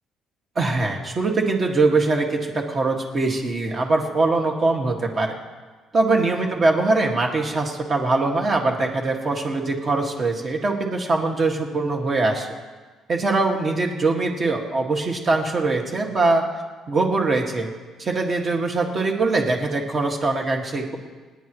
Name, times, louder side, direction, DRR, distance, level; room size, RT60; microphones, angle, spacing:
voice 1, 0.6-5.3 5.9-12.5 13.1-16.4 16.9-17.7 18.0-21.0, right 3 dB, 30° right, 1 dB, 1.9 m, -22 dB
29.0 x 10.0 x 3.1 m, 1.3 s
cardioid pair, 150°, 0 cm